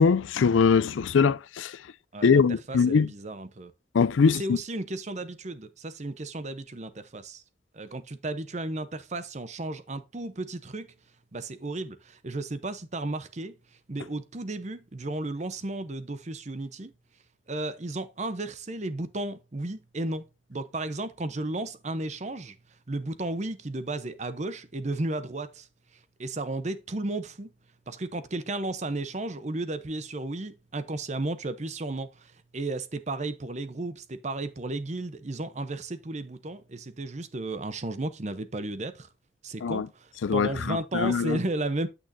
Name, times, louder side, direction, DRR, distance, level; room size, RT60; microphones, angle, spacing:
voice 1, 0.0-1.8 2.2-3.1 3.9-4.6 39.6-39.9 40.2-41.4, left 5 dB, 80° left, 0.4 m, -22 dB
voice 2, 2.7-3.7 4.2-7.4 7.7-10.9 11.3-13.6 13.9-16.9 17.5-20.2 20.5-22.6 22.9-25.7 26.2-27.5 27.9-39.1 39.4-41.9, right 2 dB, 35° right, 0.7 m, -34 dB
9.0 x 6.2 x 2.6 m
head